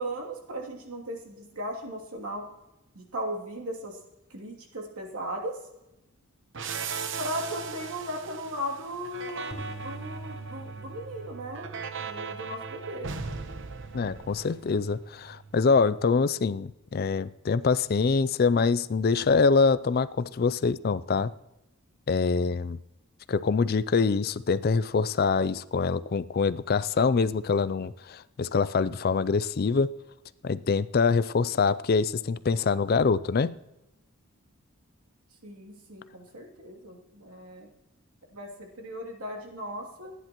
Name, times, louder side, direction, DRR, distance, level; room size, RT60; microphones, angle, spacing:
voice 1, 0.0-2.4 2.9-4.0 4.3-5.6 7.2-11.8 12.0-13.1 35.4-37.7 38.3-40.1, equal, 85° right, 0 dB, 2.8 m, -37 dB
sound 1, 6.5-15.0, right 5 dB, 55° right, 0.9 m, -38 dB
sound 2, 9.5-15.8, right 4 dB, 25° left, 4.4 m, -45 dB
voice 2, 13.9-21.3 22.1-22.8 23.3-29.9 30.4-33.6, left 4 dB, 45° left, 17 dB, 0.4 m, -25 dB
29.0 x 10.0 x 3.0 m, 0.94 s
head